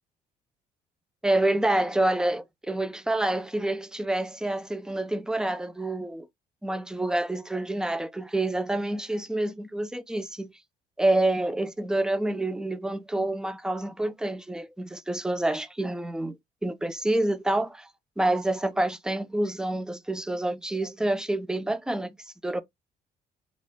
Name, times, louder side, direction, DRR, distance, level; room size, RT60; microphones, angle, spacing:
voice 1, 1.2-6.3 6.6-10.5 11.0-16.4 16.6-17.9 18.2-22.2 22.4-22.6, right 1 dB, 5° right, 0.4 m, -27 dB
4.0 x 2.4 x 3.5 m
cardioid pair, 110°, 17 cm